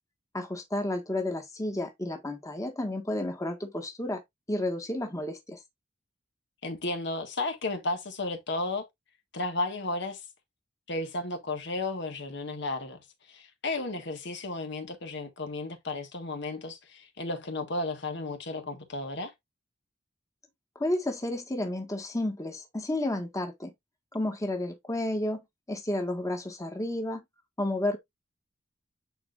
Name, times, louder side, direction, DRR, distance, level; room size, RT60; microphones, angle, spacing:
voice 1, 0.3-4.2 4.5-5.6 20.7-23.7 24.1-25.4 25.7-27.2 27.6-28.0, left 1 dB, 15° left, 1.5 m, -31 dB
voice 2, 6.6-8.9 9.3-10.2 10.9-13.0 13.3-19.3, left 2 dB, 65° left, 1.6 m, -33 dB
9.8 x 4.3 x 2.5 m
head